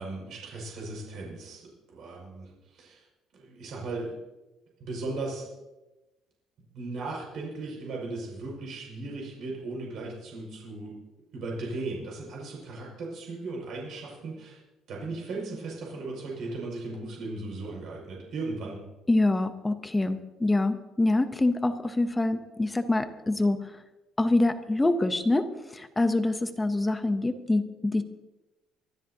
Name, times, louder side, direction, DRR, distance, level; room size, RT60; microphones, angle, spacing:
voice 1, 0.0-3.1 3.3-4.2 4.8-5.5 6.7-10.9 11.3-14.6 14.9-18.8, right 3 dB, 50° right, -2 dB, 5.7 m, -37 dB
voice 2, 19.1-23.7 24.2-28.0, left 2 dB, 10° left, 9 dB, 0.8 m, -25 dB
24.0 x 13.0 x 2.8 m, 1.0 s
cardioid pair, 165°, 0 cm